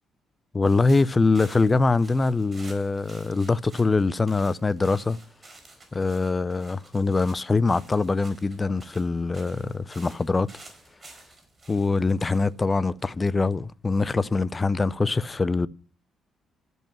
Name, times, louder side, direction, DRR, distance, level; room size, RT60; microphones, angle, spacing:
voice 1, 0.5-5.2 5.9-10.5 11.7-15.7, left 3 dB, 25° left, 0.4 m, -23 dB
sound 1, 0.7-13.4, right 2 dB, 30° right, 4.3 m, -51 dB
12.0 x 5.4 x 7.5 m
cardioid pair, 90°, 0 cm